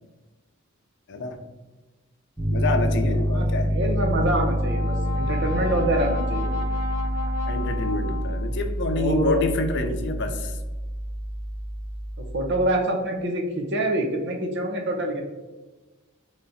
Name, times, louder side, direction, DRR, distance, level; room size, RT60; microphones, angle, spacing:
voice 1, 1.1-1.4 2.5-3.7 7.5-10.6, left 2 dB, 60° left, 7 dB, 0.5 m, -27 dB
Piano, 2.4-12.6, equal, 10° right, 0.5 m, -27 dB
voice 2, 3.3-6.5 8.9-9.4 12.3-15.2, right 1 dB, 60° right, 3 dB, 0.8 m, -26 dB
Brass instrument, 4.3-8.7, left 3 dB, 85° right, 0.6 m, -33 dB
4.0 x 3.1 x 4.0 m, 1.2 s
head